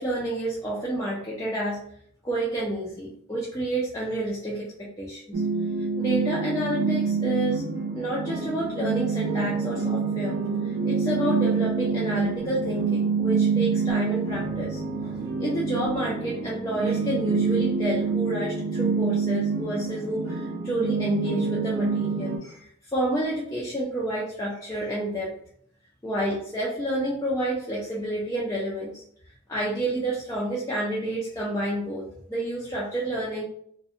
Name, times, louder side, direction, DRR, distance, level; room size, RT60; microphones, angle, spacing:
voice 1, 0.0-1.8 2.2-5.4 5.8-7.6 8.0-10.4 10.6-25.3 26.0-29.0 29.5-33.5, right 1 dB, 15° left, -6 dB, 0.3 m, -29 dB
sound 1, 5.3-22.4, right 5 dB, 80° right, 0.5 m, -27 dB
2.4 x 2.1 x 2.6 m, 0.65 s
head